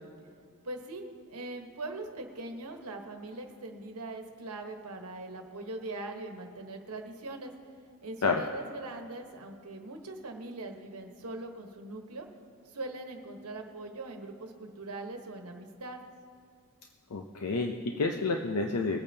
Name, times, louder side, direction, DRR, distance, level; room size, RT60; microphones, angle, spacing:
voice 1, 0.6-7.5 8.0-12.3 12.6-16.1, right 2 dB, 75° right, 4 dB, 1.2 m, -41 dB
voice 2, 17.1-19.0, left 3 dB, 85° left, 4 dB, 0.6 m, -29 dB
23.5 x 8.7 x 2.8 m, 2.3 s
head